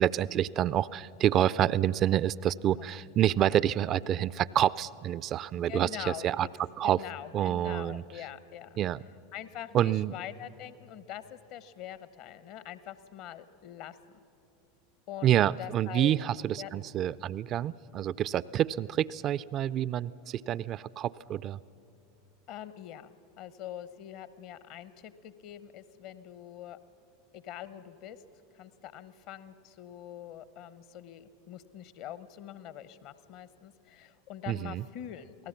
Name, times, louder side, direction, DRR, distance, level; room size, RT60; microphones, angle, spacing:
voice 1, 0.0-6.5 6.8-7.0 7.3-8.0 8.8-9.0 9.7-10.1 15.2-21.6 34.5-34.8, right 11 dB, 40° right, 20 dB, 0.4 m, -28 dB
voice 2, 5.7-6.5 6.8-8.8 9.3-14.0 15.1-16.7 22.5-26.8 27.3-28.2 28.5-35.5, left 11 dB, 50° left, 15 dB, 0.9 m, -44 dB
28.0 x 18.5 x 5.9 m, 2.8 s
figure-of-eight pair, 80°, 0 cm